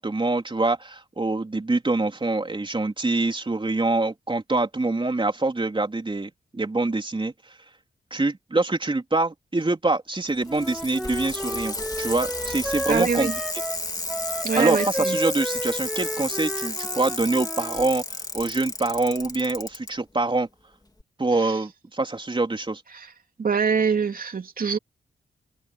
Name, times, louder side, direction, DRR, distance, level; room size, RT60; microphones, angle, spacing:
voice 1, 0.0-7.3 8.1-13.3 14.6-20.5 21.2-22.8, right 2 dB, 30° right, 3.6 m, -25 dB
Bicycle, 10.3-19.9 21.0-21.1, left 2 dB, 20° left, 2.6 m, -33 dB
Wind instrument woodwind instrument, 10.5-17.9, equal, ahead, 0.7 m, -32 dB
voice 2, 12.9-13.4 14.4-15.2 21.4-21.5 22.9-23.1 23.4-24.8, right 6 dB, 60° right, 2.7 m, -24 dB
cardioid pair, 55°, 17 cm